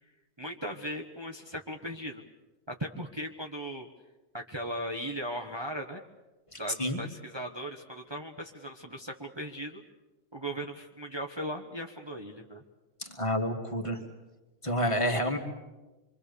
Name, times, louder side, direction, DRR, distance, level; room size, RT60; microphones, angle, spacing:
voice 1, 0.4-2.2 2.7-3.9 4.3-6.0 6.6-9.8 10.3-12.6, equal, 25° right, 2 dB, 1.2 m, -38 dB
voice 2, 6.5-7.0 13.0-14.0 14.6-15.4, equal, 25° left, 2 dB, 2.3 m, -29 dB
26.5 x 24.0 x 6.9 m, 1.1 s
omnidirectional pair, 1.2 m